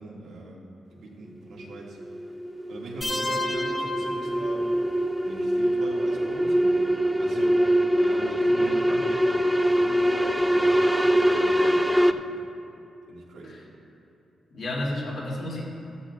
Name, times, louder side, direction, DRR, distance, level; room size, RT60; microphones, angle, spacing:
voice 1, 0.0-2.0 2.7-4.7 5.2-12.5 13.1-13.6, right 2 dB, 90° right, -3 dB, 2.1 m, -41 dB
sound 1, 1.6-12.1, equal, ahead, 0.4 m, -23 dB
sound 2, 3.0-5.0, left 1 dB, 20° left, 1.0 m, -31 dB
voice 2, 8.4-9.0 13.4-13.6 14.5-15.6, left 1 dB, 60° left, -5 dB, 2.7 m, -32 dB
14.0 x 14.0 x 2.5 m, 2.7 s
cardioid pair, 110°, 0 cm